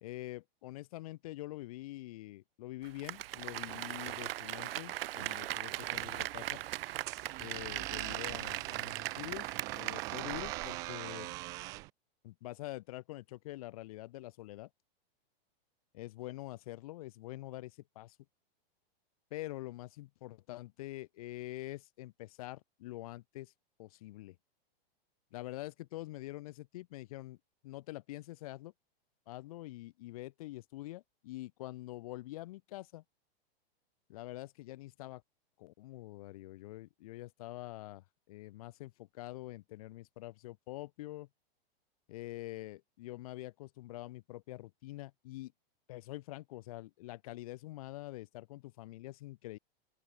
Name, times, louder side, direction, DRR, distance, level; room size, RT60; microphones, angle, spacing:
voice 1, 0.0-6.6 7.4-11.3 12.2-14.7 15.9-18.2 19.3-23.5 23.8-24.4 25.3-27.4 27.6-28.7 29.3-33.0 34.1-35.2 35.6-38.9 39.2-41.3 42.1-45.5 45.9-49.6, left 17 dB, 40° left, 1.0 m, -45 dB
Applause, 2.8-11.0 11.3-11.4, right 15 dB, 70° right, 0.5 m, -40 dB
sound 1, 5.7-11.9, right 22 dB, 10° right, 0.4 m, -42 dB
open air
supercardioid pair, 175°, 30 cm